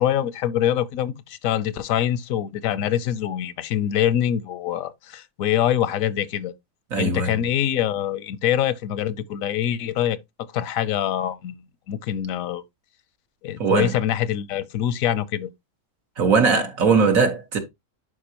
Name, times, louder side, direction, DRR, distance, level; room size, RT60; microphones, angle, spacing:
voice 1, 0.0-6.5 7.0-10.2 10.5-12.6 13.4-15.5, left 11 dB, 85° left, 1.1 m, -24 dB
voice 2, 6.9-7.4 13.6-13.9 16.2-17.6, right 5 dB, 80° right, 1.9 m, -20 dB
11.0 x 4.9 x 2.9 m
omnidirectional pair, 1.4 m